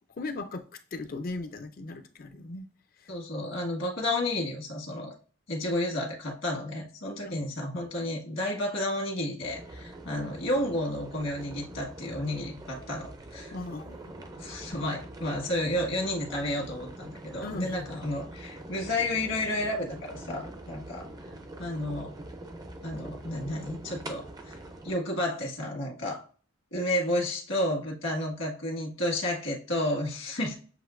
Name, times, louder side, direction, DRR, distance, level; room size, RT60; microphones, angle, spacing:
voice 1, 0.1-0.6 0.9-2.7 2.9-3.1 7.2-7.4 13.5-14.2 17.4-17.9, left 2 dB, 45° left, 0.5 m, -38 dB
voice 2, 3.1-5.1 5.5-13.5 14.4-21.1 21.6-22.1 22.8-24.5 24.8-26.2 26.7-30.6, left 1 dB, 75° left, 1.6 m, -31 dB
sound 1, 9.4-24.9, right 1 dB, 20° right, 0.4 m, -44 dB
7.6 x 2.6 x 2.5 m
head